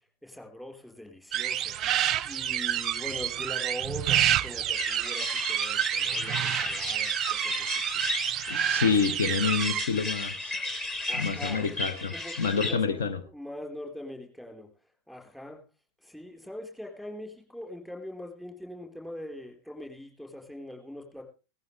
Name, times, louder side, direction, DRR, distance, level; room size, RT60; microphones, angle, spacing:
voice 1, 0.2-8.0 11.1-11.8 12.1-15.6 16.0-21.2, left 1 dB, 5° left, 2 dB, 4.6 m, -42 dB
sound 1, 1.3-9.8, right 10 dB, 30° right, 0.6 m, -28 dB
sound 2, 4.7-12.7, left 2 dB, 25° left, 3.4 m, -34 dB
voice 2, 8.5-10.6 11.1-13.2, left 5 dB, 60° left, 11 dB, 1.0 m, -28 dB
17.5 x 14.5 x 3.4 m, 0.32 s
figure-of-eight pair, 90°, 0 cm